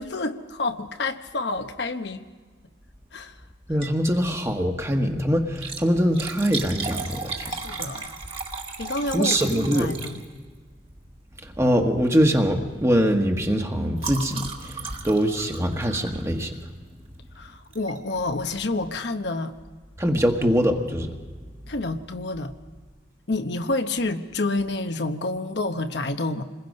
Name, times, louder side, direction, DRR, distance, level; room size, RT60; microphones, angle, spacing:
voice 1, 0.0-2.2 3.1-3.4 7.6-8.1 8.8-10.2 17.4-19.5 21.7-22.5 23.3-26.4, left 2 dB, 70° left, 8 dB, 0.9 m, -28 dB
Liquid, 3.6-4.1 4.4-4.5 5.4-10.6 11.5-11.8 12.2-12.4 12.7-16.8 17.7-18.0 18.5-18.6 18.8-18.9, right 4 dB, 30° right, 1.7 m, -35 dB
voice 2, 3.7-7.5 9.1-9.9 11.6-14.7 15.0-16.6 20.0-21.1, equal, 15° right, 4 dB, 1.2 m, -23 dB
27.0 x 21.0 x 5.3 m, 1.5 s
head